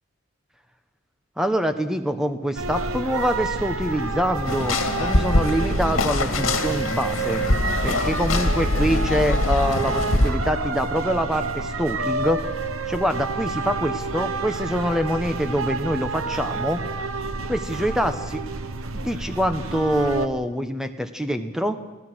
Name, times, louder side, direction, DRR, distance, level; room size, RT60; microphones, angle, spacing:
voice 1, 1.4-7.5 7.8-12.4 12.9-16.8 17.5-18.4 18.9-21.8, equal, 5° right, 8 dB, 1.0 m, -25 dB
sound 1, 2.6-20.3, right 3 dB, 90° right, 1.2 m, -29 dB
sound 2, 4.4-10.3, left 2 dB, 80° left, 2.1 m, -23 dB
28.5 x 16.5 x 6.3 m, 1.1 s
head